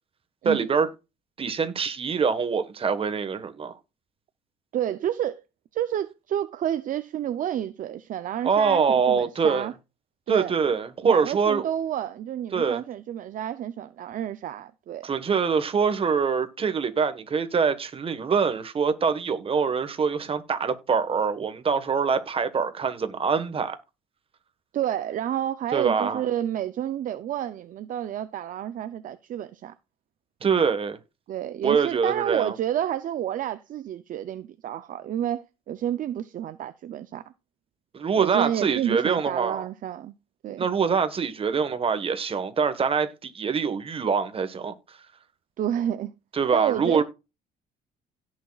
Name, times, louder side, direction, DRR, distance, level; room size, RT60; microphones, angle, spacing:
voice 1, 0.4-0.9 1.4-3.8 8.4-9.7 10.3-11.7 12.5-12.8 15.0-23.8 25.7-26.2 30.4-31.0 31.6-32.5 37.9-39.6 40.6-45.0 46.3-47.0, right 6 dB, 35° right, 1.4 m, -24 dB
voice 2, 4.7-5.4 5.7-9.7 10.3-10.5 11.0-15.1 24.7-29.7 31.3-37.2 38.2-40.1 40.4-40.7 45.6-46.1 46.5-47.0, right 11 dB, 50° right, 0.6 m, -30 dB
17.0 x 6.4 x 2.4 m
cardioid pair, 110°, 17 cm